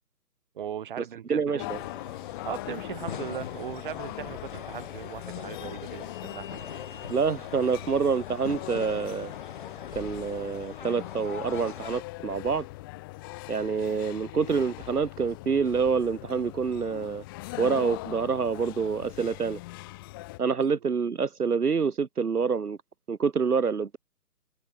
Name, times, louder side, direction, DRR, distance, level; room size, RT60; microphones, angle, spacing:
voice 1, 0.6-1.6 2.4-7.1, right 10 dB, 30° right, 1.9 m, -38 dB
voice 2, 1.3-1.8 7.1-9.3 9.9-12.6 13.5-17.2 17.6-19.6 20.4-22.8 23.1-24.0, right 5 dB, 70° right, 1.3 m, -27 dB
sound 1, 1.6-20.4, left 22 dB, 15° left, 1.4 m, -41 dB
sound 2, 1.7-12.0, left 7 dB, 30° left, 1.0 m, -42 dB
open air
figure-of-eight pair, 140°, 48 cm